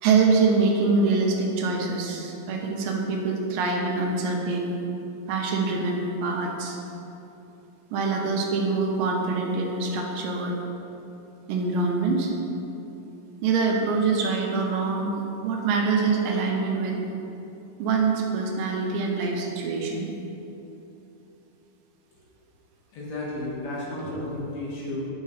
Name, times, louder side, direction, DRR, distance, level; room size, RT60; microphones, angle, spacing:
voice 1, 0.0-4.8 5.3-6.8 7.9-10.6 11.5-12.3 13.4-17.0 17.8-20.1 24.0-24.1, right 4 dB, 90° right, 0 dB, 2.5 m, -25 dB
voice 2, 22.9-25.1, left 1 dB, 55° left, -5 dB, 2.4 m, -33 dB
9.3 x 5.1 x 4.0 m, 3.0 s
omnidirectional pair, 3.9 m